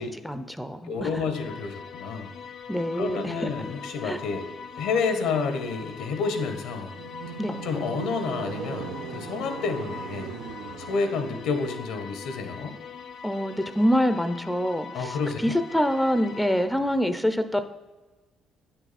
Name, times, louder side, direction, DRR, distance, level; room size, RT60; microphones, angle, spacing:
voice 1, 0.2-1.1 2.7-3.5 4.0-4.2 7.4-7.6 13.2-15.2 15.4-17.6, equal, 5° left, 10 dB, 0.5 m, -25 dB
voice 2, 0.9-2.3 2.9-4.5 4.7-6.9 7.6-10.3 10.8-12.7 14.9-15.4, left 4 dB, 85° left, 8 dB, 0.9 m, -29 dB
sound 1, 1.3-16.7, left 6 dB, 55° left, 0.5 m, -42 dB
sound 2, 6.9-11.6, right 7 dB, 85° right, 0.6 m, -39 dB
8.7 x 5.8 x 4.2 m, 1.2 s
cardioid pair, 80°, 0 cm